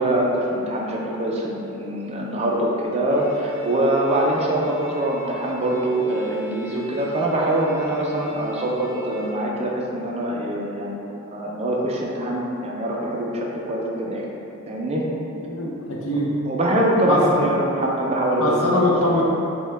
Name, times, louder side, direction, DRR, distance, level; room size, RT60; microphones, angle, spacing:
voice 1, 0.0-14.3 14.7-15.0 16.5-18.6 19.0-19.2, right 1 dB, 30° right, -2 dB, 0.4 m, -23 dB
Bowed string instrument, 3.1-9.4, right 2 dB, 10° right, 1.5 m, -38 dB
voice 2, 15.4-16.3 17.0-17.4 18.4-19.2, left 1 dB, 65° left, -4 dB, 0.7 m, -22 dB
5.4 x 2.2 x 3.3 m, 2.8 s
head